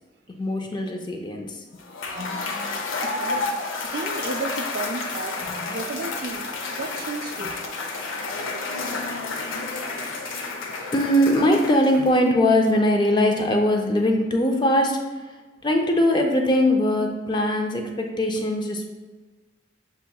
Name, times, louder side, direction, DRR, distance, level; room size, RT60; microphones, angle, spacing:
voice 1, 0.3-1.6 2.1-3.5 5.4-5.7 7.4-7.5 10.9-15.1 15.6-18.9, left 1 dB, 20° left, 3 dB, 0.4 m, -22 dB
Cheering / Applause / Crowd, 1.8-12.3, left 3 dB, 85° left, 0.6 m, -31 dB
voice 2, 3.0-3.5 3.9-5.4 5.7-6.4 6.8-7.5, right 3 dB, 50° right, 5 dB, 0.3 m, -32 dB
7.0 x 2.7 x 2.3 m, 1.3 s
head